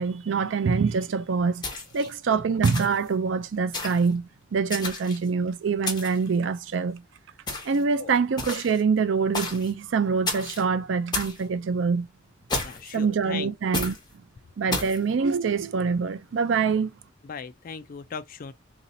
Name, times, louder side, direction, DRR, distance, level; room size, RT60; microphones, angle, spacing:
voice 1, 0.0-1.7 1.9-7.0 7.6-12.1 12.9-13.9 14.6-16.9, right 5 dB, 70° right, 0.4 m, -25 dB
sound 1, 1.6-2.1 2.6-3.1 3.7-4.1 4.7-5.3 5.9-6.3 7.5-7.8 8.4-8.8 9.3-9.7 10.3-10.6 11.1-11.4 12.5-13.0 13.7-14.0 14.7-15.0, left 3 dB, 20° left, 1.1 m, -31 dB
voice 2, 12.6-13.5 17.2-18.5, left 6 dB, 45° left, 0.4 m, -38 dB
4.0 x 2.7 x 2.6 m
head